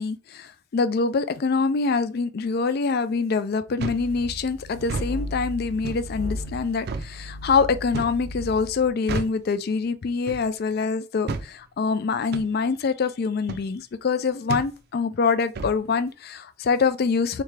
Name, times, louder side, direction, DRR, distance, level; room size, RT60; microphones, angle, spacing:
voice 1, 0.0-17.4, left 4 dB, 55° left, 0.4 m, -25 dB
sound 1, 3.8-4.1 4.8-5.1 5.8-6.1 6.9-7.1 7.9-8.2 9.1-9.4 10.3-10.5 11.3-11.5 12.3-12.5 13.5-13.7 14.5-14.7 15.6-15.8, right 3 dB, 60° right, 0.4 m, -31 dB
sound 2, 3.9-8.9, left 1 dB, 90° left, 1.2 m, -36 dB
3.7 x 3.4 x 3.2 m
head